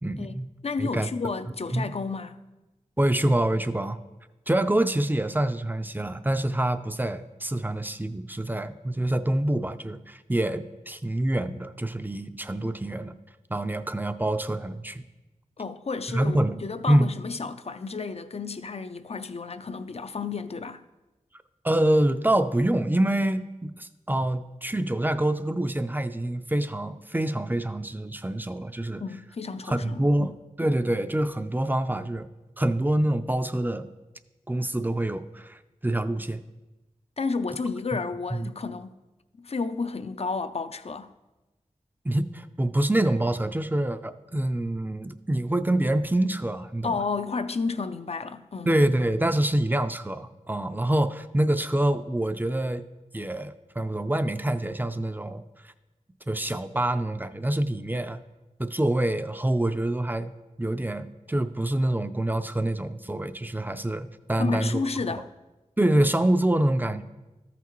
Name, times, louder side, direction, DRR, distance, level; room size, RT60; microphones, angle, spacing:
voice 1, 0.0-0.4 0.8-1.1 1.7-1.9 3.0-4.0 4.5-13.2 13.5-15.0 16.1-16.6 16.9-17.1 21.6-29.0 29.7-30.3 30.6-32.3 32.6-33.9 34.5-36.4 38.3-38.5 42.0-46.9 48.7-52.8 53.1-55.7 56.3-58.2 58.6-60.3 60.6-64.8 65.8-67.0, right 1 dB, 15° right, 0.4 m, -26 dB
voice 2, 0.6-2.4 15.6-20.8 29.0-30.4 37.2-38.9 39.4-41.1 46.8-48.7 64.4-65.3, left 4 dB, 55° left, 0.4 m, -31 dB
13.5 x 5.9 x 3.1 m
wide cardioid pair, 60°, 13 cm